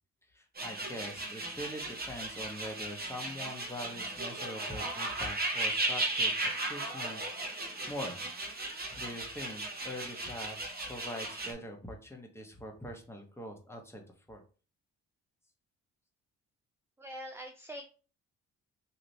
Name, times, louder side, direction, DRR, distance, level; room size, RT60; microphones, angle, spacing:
voice 1, 0.3-7.2 7.5-8.2 8.9-10.6 10.9-14.0 14.3-14.4, left 1 dB, 10° left, 2 dB, 1.1 m, -43 dB
sound 1, 0.6-11.5, right 2 dB, 30° right, 1.1 m, -36 dB
voice 2, 17.0-17.8, equal, 10° right, 6 dB, 0.4 m, -43 dB
3.2 x 2.9 x 4.0 m, 0.37 s
cardioid pair, 90°, 30 cm